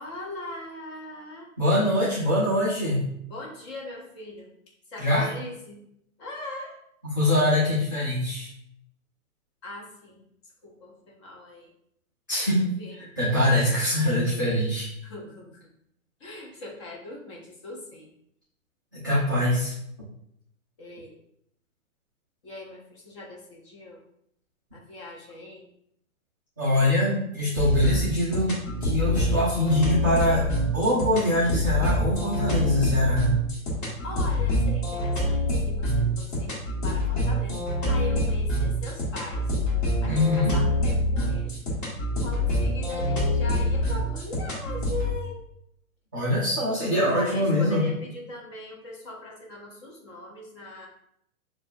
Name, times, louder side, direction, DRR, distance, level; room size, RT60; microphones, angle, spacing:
voice 1, 0.0-1.5 3.3-4.5 4.9-5.8 6.2-6.8 9.6-10.2 10.6-11.7 12.6-13.1 15.0-15.7 16.2-18.1 20.8-21.2 22.4-24.0 24.7-25.7 34.0-36.5 36.8-39.5 40.0-41.6 42.2-45.5 47.1-50.9, left 1 dB, 20° left, -2 dB, 0.6 m, -40 dB
voice 2, 1.6-3.0 5.0-5.3 7.0-8.5 12.3-12.6 13.2-14.9 18.9-19.7 26.6-28.5 28.8-30.5 30.7-33.3 40.0-40.5 46.1-47.8, left 1 dB, 15° right, -11 dB, 0.3 m, -23 dB
sound 1, 27.6-45.1, equal, 35° left, 1.4 m, -26 dB
6.2 x 2.3 x 2.6 m, 0.74 s
figure-of-eight pair, 125°, 42 cm